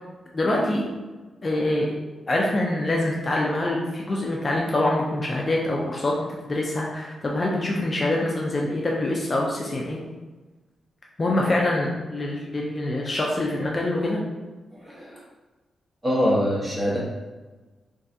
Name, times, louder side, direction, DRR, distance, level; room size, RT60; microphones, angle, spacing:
voice 1, 0.3-0.9 1.4-1.9 2.3-10.0 11.2-14.2, left 1 dB, 35° left, -2 dB, 0.4 m, -25 dB
voice 2, 14.7-15.2 16.0-17.0, equal, 15° right, -6 dB, 1.0 m, -25 dB
3.1 x 2.3 x 2.6 m, 1.3 s
cardioid pair, 90°, 0 cm